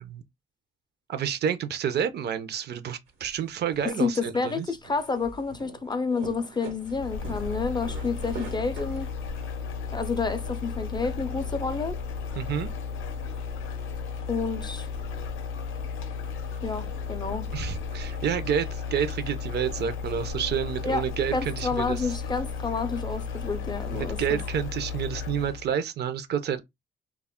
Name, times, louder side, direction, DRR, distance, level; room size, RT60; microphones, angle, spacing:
voice 1, 1.1-4.7 12.4-12.7 17.5-22.0 23.9-26.6, right 8 dB, 55° right, 0.5 m, -29 dB
sound 1, 3.1-9.1, right 4 dB, 85° right, 1.1 m, -45 dB
voice 2, 3.8-9.1 9.9-12.0 14.3-14.9 16.6-17.5 20.8-21.0 21.3-24.4, left 4 dB, 20° left, 0.3 m, -29 dB
sound 2, 6.8-25.7, left 5 dB, 85° left, 0.5 m, -34 dB
2.3 x 2.0 x 3.5 m
cardioid pair, 90°, 20 cm